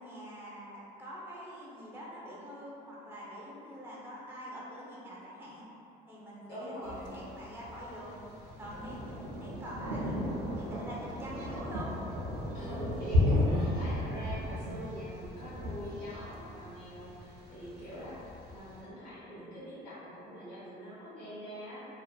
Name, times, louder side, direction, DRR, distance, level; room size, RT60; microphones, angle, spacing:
voice 1, 0.0-5.7 6.1-8.2 8.6-11.9 17.6-17.9, equal, 15° right, -6 dB, 0.6 m, -45 dB
voice 2, 6.5-7.2 12.5-21.9, equal, 85° left, -11 dB, 0.9 m, -43 dB
Thunder, 6.8-18.8, left 1 dB, 90° right, 0.5 m, -34 dB
2.5 x 2.3 x 2.2 m, 2.8 s
cardioid pair, 110°, 17 cm